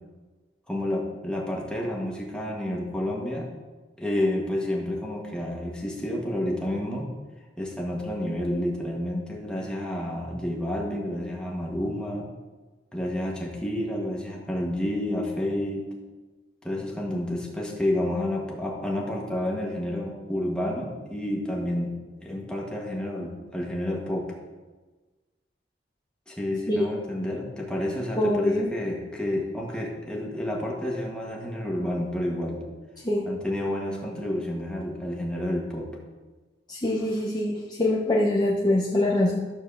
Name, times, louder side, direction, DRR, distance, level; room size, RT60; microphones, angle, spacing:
voice 1, 0.7-3.5 4.0-7.1 7.6-12.3 12.9-15.9 16.6-21.9 22.2-24.4 26.3-32.6 33.3-35.9, left 1 dB, 5° left, -2 dB, 1.7 m, -30 dB
voice 2, 28.2-28.7 33.0-33.3 36.7-39.4, left 1 dB, 25° left, -3 dB, 0.9 m, -24 dB
12.0 x 4.4 x 7.1 m, 1.3 s
head